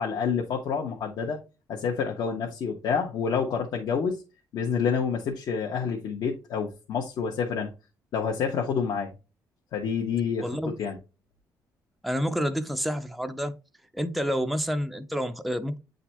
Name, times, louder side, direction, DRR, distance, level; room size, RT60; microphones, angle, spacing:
voice 1, 0.0-1.4 1.7-4.2 4.5-7.7 8.1-9.1 9.7-11.0, left 6 dB, 65° left, 1.2 m, -28 dB
voice 2, 10.4-10.7 12.0-13.6 13.9-15.8, equal, ahead, 0.5 m, -28 dB
9.0 x 4.0 x 2.9 m
cardioid pair, 165°, 7 cm